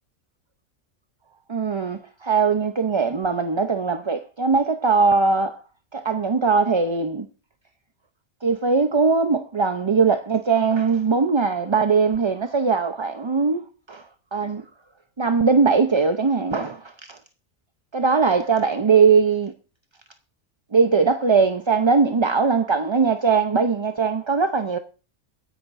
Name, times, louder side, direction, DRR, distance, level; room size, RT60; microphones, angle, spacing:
voice 1, 1.5-5.6 5.9-7.3 8.4-14.6 15.2-17.2 17.9-19.5 20.7-24.8, right 5 dB, 30° right, 0.6 m, -20 dB
22.5 x 10.5 x 2.6 m
omnidirectional pair, 1.3 m